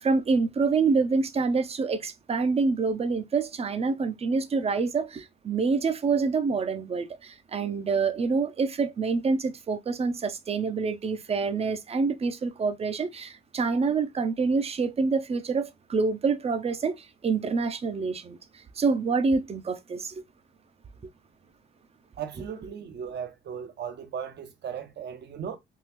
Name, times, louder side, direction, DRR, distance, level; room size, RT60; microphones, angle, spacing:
voice 1, 0.0-18.4 18.8-20.2, right 4 dB, 30° right, 0.5 m, -26 dB
voice 2, 22.2-25.6, right 7 dB, 60° right, 0.7 m, -37 dB
3.6 x 2.4 x 2.9 m
cardioid pair, 90°, 20 cm